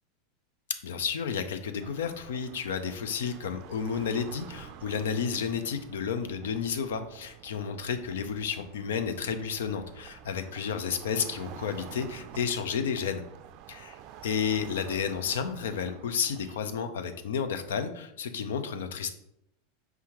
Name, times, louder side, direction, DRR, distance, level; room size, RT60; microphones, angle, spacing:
voice 1, 0.8-13.2 13.7-13.9 14.2-19.1, left 6 dB, 75° left, 8 dB, 0.4 m, -31 dB
sound 1, 1.8-16.6, right 10 dB, 55° right, 0.4 m, -49 dB
4.6 x 3.5 x 2.9 m, 0.77 s
hypercardioid pair, 90°, 0 cm